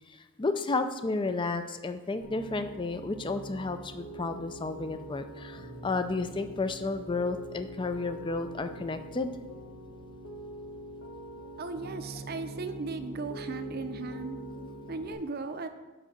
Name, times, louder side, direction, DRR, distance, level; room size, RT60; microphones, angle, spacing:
voice 1, 0.1-9.3 14.4-14.7, left 3 dB, 20° left, 9 dB, 0.4 m, -32 dB
Piano, 2.2-15.1, right 1 dB, 75° left, 1.6 m, -44 dB
voice 2, 11.6-14.4 14.9-15.7, right 3 dB, 45° right, 8 dB, 0.6 m, -36 dB
7.8 x 5.7 x 6.4 m, 1.2 s
head